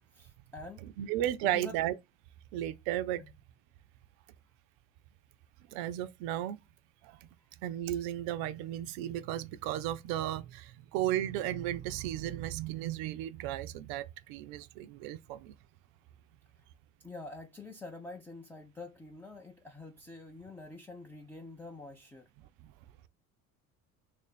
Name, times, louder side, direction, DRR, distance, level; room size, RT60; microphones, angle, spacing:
voice 1, 0.1-0.8 1.4-1.8 3.2-3.3 17.0-22.3, left 3 dB, 5° left, 0.4 m, -47 dB
voice 2, 0.8-2.0 2.5-3.2 5.7-6.6 7.0-7.2 7.6-15.6 22.6-22.7, right 12 dB, 60° right, 0.5 m, -34 dB
3.0 x 2.6 x 4.2 m
hypercardioid pair, 70°, 42 cm